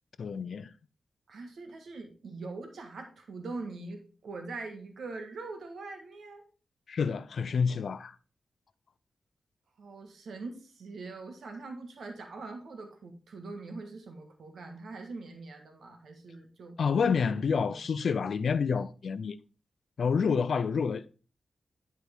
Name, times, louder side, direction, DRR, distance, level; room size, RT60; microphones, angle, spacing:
voice 1, 0.2-0.7 6.9-8.1 16.8-19.4 20.0-21.1, left 6 dB, 75° left, 0.5 m, -28 dB
voice 2, 1.3-6.4 9.8-16.8 17.3-17.8, right 3 dB, 80° right, 1.6 m, -43 dB
10.5 x 4.7 x 3.6 m
cardioid pair, 60°, 0 cm